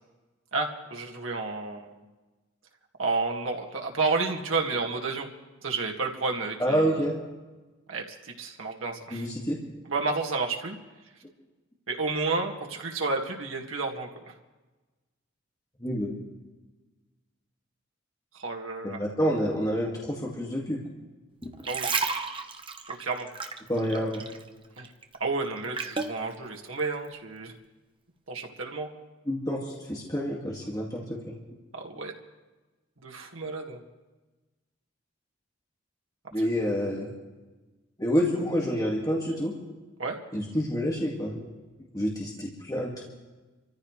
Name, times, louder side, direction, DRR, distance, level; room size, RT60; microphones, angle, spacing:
voice 1, 0.5-2.0 3.0-5.3 5.6-7.1 7.9-9.3 9.9-10.8 11.9-14.3 18.3-19.0 21.7-22.0 23.0-23.3 24.8-24.9 25.2-27.5 28.3-28.9 31.7-32.1 33.0-33.8 40.0-40.2, right 3 dB, 90° right, 1 dB, 2.1 m, -31 dB
voice 2, 6.6-7.1 9.1-9.6 15.8-16.1 18.8-20.8 21.4-21.5 23.7-24.2 29.3-31.3 36.3-37.1 38.0-39.5 40.3-41.5 41.9-43.0, equal, 20° left, -3 dB, 2.0 m, -28 dB
sound 1, 21.4-24.5 24.8-26.2 26.8-26.9, right 4 dB, 25° right, 1.0 m, -32 dB
27.5 x 14.5 x 3.3 m, 1.2 s
head